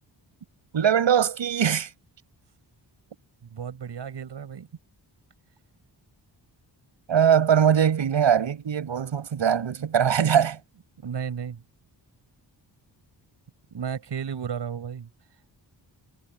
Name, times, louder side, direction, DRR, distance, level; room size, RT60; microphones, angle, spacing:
voice 1, 0.7-1.9 7.1-10.6, right 8 dB, 85° right, 7.8 m, -21 dB
voice 2, 3.5-4.7 11.0-11.6 13.7-15.1, right 7 dB, 70° right, 6.9 m, -33 dB
wide cardioid pair, 175°, 44 cm